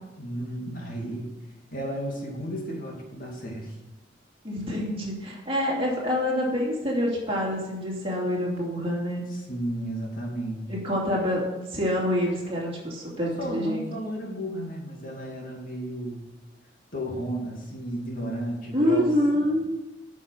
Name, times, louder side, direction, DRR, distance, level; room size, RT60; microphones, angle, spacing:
voice 1, 0.2-1.3 1.7-3.8 9.3-10.7 13.1-16.3 16.9-19.5, equal, 50° left, -1 dB, 2.4 m, -33 dB
voice 2, 4.4-9.2 10.7-11.4 11.7-13.9 18.7-19.7, left 1 dB, 30° right, -3 dB, 2.7 m, -26 dB
9.0 x 6.2 x 7.8 m, 1.0 s
head